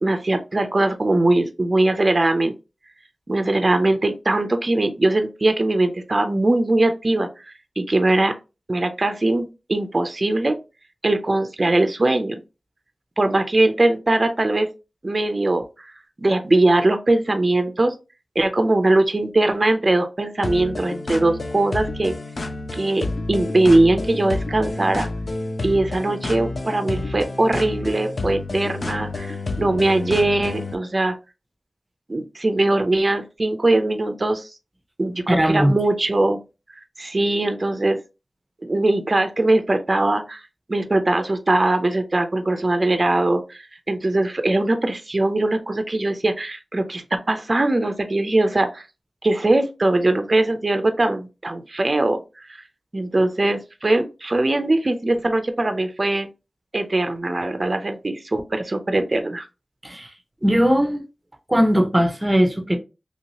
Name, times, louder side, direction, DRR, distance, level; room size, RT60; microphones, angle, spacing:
voice 1, 0.0-2.5 3.3-7.3 7.8-8.3 8.7-10.6 11.0-12.4 13.2-14.7 15.0-15.9 16.2-17.9 18.4-22.1 22.7-25.1 25.6-31.2 32.1-34.5 35.0-36.4 37.0-38.0 38.6-40.4 40.7-48.8 49.2-52.2 52.5-52.6 52.9-56.3 56.7-59.5, right 2 dB, 45° right, 0.5 m, -21 dB
sound 1, 20.4-30.7, left 2 dB, 70° left, 0.4 m, -29 dB
voice 2, 35.3-35.8 59.8-60.1 60.4-61.0 61.5-62.8, equal, 20° right, 0.8 m, -18 dB
3.0 x 2.8 x 2.8 m
cardioid pair, 45°, 0 cm